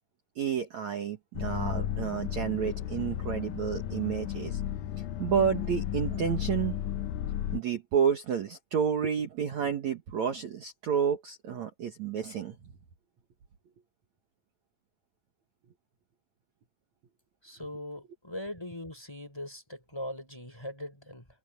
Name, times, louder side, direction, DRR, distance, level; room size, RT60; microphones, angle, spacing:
voice 1, 0.4-4.6 5.2-6.7 7.5-12.6, right 8 dB, 55° right, 2.4 m, -30 dB
sound 1, 1.3-7.6, left 11 dB, 75° left, 1.8 m, -34 dB
voice 2, 17.4-21.3, left 1 dB, 5° left, 4.0 m, -40 dB
omnidirectional pair, 4.6 m